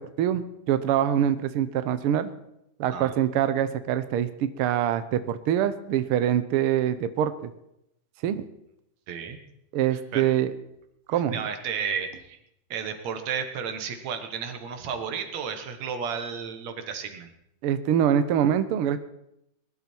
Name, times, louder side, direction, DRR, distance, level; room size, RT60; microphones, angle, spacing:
voice 1, 0.0-2.3 2.8-7.5 8.2-8.4 9.7-10.5 11.1-11.4 17.6-19.0, right 10 dB, 85° right, 11 dB, 1.2 m, -24 dB
voice 2, 9.1-9.4 9.9-10.3 11.1-12.4 12.7-17.3, right 6 dB, 65° right, 7 dB, 2.6 m, -33 dB
21.0 x 12.0 x 4.5 m, 0.79 s
omnidirectional pair, 3.6 m